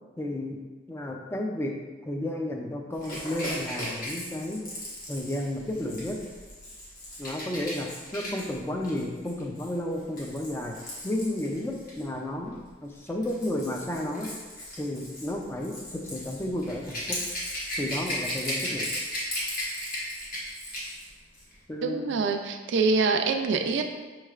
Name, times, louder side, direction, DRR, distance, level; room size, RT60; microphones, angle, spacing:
voice 1, 0.2-0.6 0.9-1.8 2.0-4.6 5.1-6.2 7.2-10.8 11.0-14.3 14.8-17.2 17.8-18.9 21.7-22.2, left 1 dB, 15° left, 1 dB, 0.3 m, -32 dB
Rattle / Rattle (instrument), 3.0-12.0 13.0-21.1 21.3-21.5, left 1 dB, 50° left, 1.1 m, -36 dB
voice 2, 21.8-23.8, right 4 dB, 65° right, 5 dB, 0.3 m, -25 dB
5.4 x 3.1 x 2.4 m, 1.3 s
head